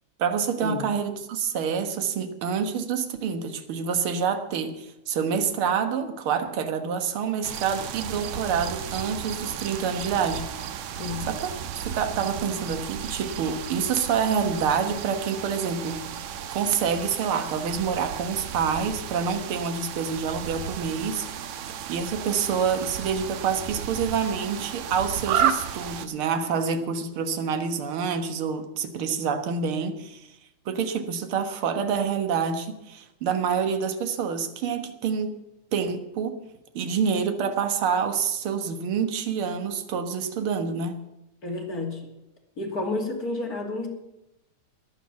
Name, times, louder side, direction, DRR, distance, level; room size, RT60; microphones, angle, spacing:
voice 1, 0.2-10.5 11.3-11.5 11.7-16.0 16.5-21.3 21.9-30.3 30.7-35.4 35.7-36.4 36.7-41.0, right 6 dB, 55° right, 7 dB, 2.0 m, -27 dB
sound 1, 7.4-26.1, right 8 dB, 75° right, 2.2 m, -33 dB
voice 2, 10.9-11.3 41.4-42.0 42.6-43.9, left 2 dB, 30° left, 0 dB, 3.0 m, -30 dB
14.0 x 11.0 x 7.1 m, 0.90 s
omnidirectional pair, 3.4 m